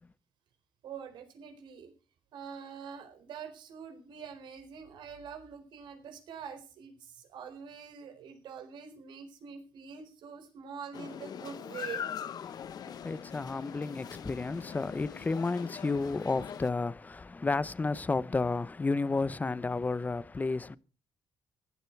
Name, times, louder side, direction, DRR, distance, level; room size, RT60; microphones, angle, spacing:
voice 1, 0.8-1.9 2.3-12.0, right 6 dB, 75° right, 4.3 m, -45 dB
sound 1, 10.9-16.7, left 8 dB, 55° left, 0.9 m, -42 dB
voice 2, 12.4-20.8, left 3 dB, 20° left, 0.7 m, -32 dB
15.5 x 12.5 x 4.7 m
cardioid pair, 110°, 8 cm